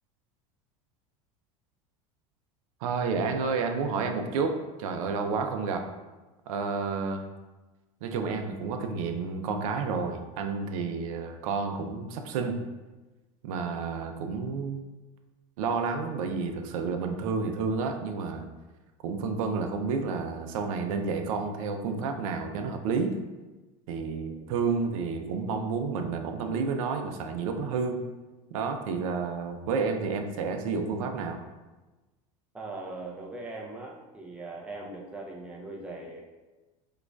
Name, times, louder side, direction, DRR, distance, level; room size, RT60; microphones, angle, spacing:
voice 1, 2.8-5.9 6.5-7.3 8.0-12.6 13.4-14.8 15.6-18.4 19.0-23.2 23.9-28.0 28.5-31.4, right 5 dB, 75° right, 5 dB, 0.4 m, -30 dB
voice 2, 32.5-36.2, right 2 dB, 5° right, -2 dB, 0.4 m, -40 dB
4.7 x 2.3 x 2.2 m, 1.2 s
hypercardioid pair, 95°, 18 cm